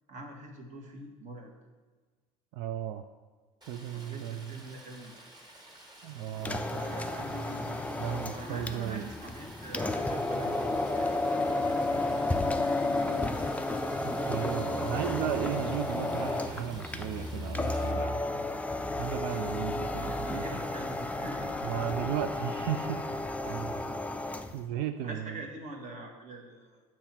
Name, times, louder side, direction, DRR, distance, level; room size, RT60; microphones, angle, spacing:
voice 1, 0.1-1.5 3.9-5.2 6.7-12.8 20.1-21.5 25.0-26.8, right 2 dB, 40° right, 2 dB, 1.2 m, -44 dB
voice 2, 2.5-3.0 3.7-4.6 6.0-6.6 8.0-9.1 14.0-18.3 19.0-20.6 21.6-23.1 23.4-23.9 24.5-25.4, right 10 dB, 60° right, 7 dB, 0.4 m, -35 dB
Stream, 3.6-17.9, right 1 dB, 20° right, 1.6 m, -52 dB
sound 1, 6.3-24.6, left 2 dB, 5° left, 0.4 m, -32 dB
7.0 x 3.0 x 5.8 m, 1.4 s
hypercardioid pair, 70°, 19 cm